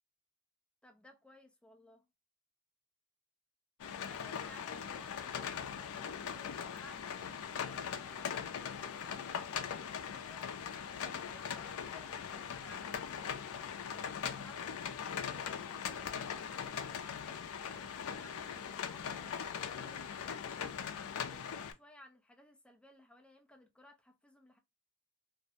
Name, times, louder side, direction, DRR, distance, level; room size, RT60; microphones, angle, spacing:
voice 1, 0.8-2.1 4.0-10.4 10.9-13.5 13.9-20.7 21.3-24.6, left 1 dB, 5° left, 0.5 m, -59 dB
sound 1, 3.8-21.7, left 7 dB, 80° left, 0.4 m, -40 dB
2.5 x 2.1 x 2.7 m
head